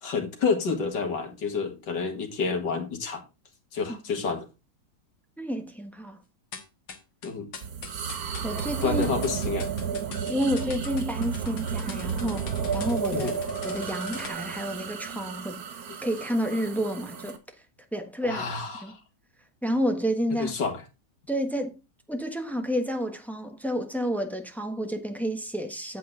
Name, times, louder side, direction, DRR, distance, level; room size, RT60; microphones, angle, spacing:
voice 1, 0.0-3.2 3.7-4.5 7.2-7.5 8.8-9.7 13.1-13.4 18.2-19.0 20.4-20.8, left 5 dB, 70° left, 2.4 m, -29 dB
voice 2, 5.4-6.2 8.4-9.0 10.3-13.3 13.6-15.6 16.0-17.4 17.9-18.4 18.8-18.9 19.6-20.5 21.3-21.8 22.1-26.0, equal, ahead, 0.9 m, -30 dB
sound 1, 6.5-14.3, left 6 dB, 90° left, 2.1 m, -43 dB
sound 2, 7.6-17.4, right 6 dB, 60° right, 1.5 m, -32 dB
8.5 x 8.0 x 3.8 m
omnidirectional pair, 1.9 m